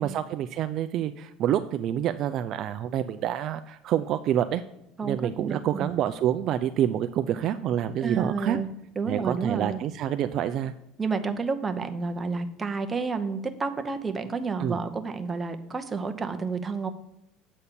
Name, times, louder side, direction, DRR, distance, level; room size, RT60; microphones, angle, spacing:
voice 1, 0.0-4.6 5.0-8.6 9.1-10.7 14.6-14.8, right 10 dB, 50° right, 9 dB, 0.4 m, -27 dB
voice 2, 5.0-6.0 8.0-8.7 9.0-9.8 11.0-16.9, right 4 dB, 20° right, 6 dB, 0.8 m, -30 dB
8.2 x 4.2 x 6.8 m, 0.85 s
cardioid pair, 130°, 0 cm